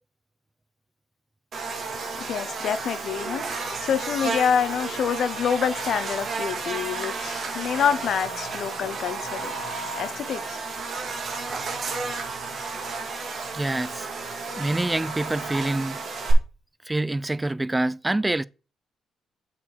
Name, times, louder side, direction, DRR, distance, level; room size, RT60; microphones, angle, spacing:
Buzz, 1.5-16.3, right 4 dB, 50° right, 2.0 m, -32 dB
voice 1, 1.9-9.6 9.9-10.6, left 8 dB, 65° left, 0.7 m, -27 dB
voice 2, 13.5-14.1 14.6-16.1 16.8-18.5, right 2 dB, 15° right, 0.3 m, -26 dB
7.4 x 4.1 x 4.5 m
cardioid pair, 90°, 0 cm